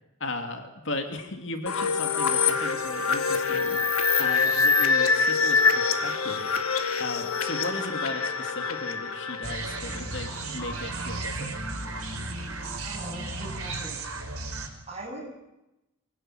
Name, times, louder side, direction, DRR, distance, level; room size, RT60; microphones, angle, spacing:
voice 1, 0.2-3.8 4.2-6.5 7.0-11.5, left 2 dB, 55° left, 5 dB, 2.7 m, -36 dB
sound 1, 1.7-10.3, left 5 dB, 80° left, 2.3 m, -25 dB
sound 2, 9.4-14.7, right 2 dB, 80° right, 5.3 m, -34 dB
voice 2, 12.8-14.0 14.9-15.2, right 1 dB, 30° right, 0 dB, 7.9 m, -39 dB
25.5 x 18.0 x 9.2 m, 0.94 s
head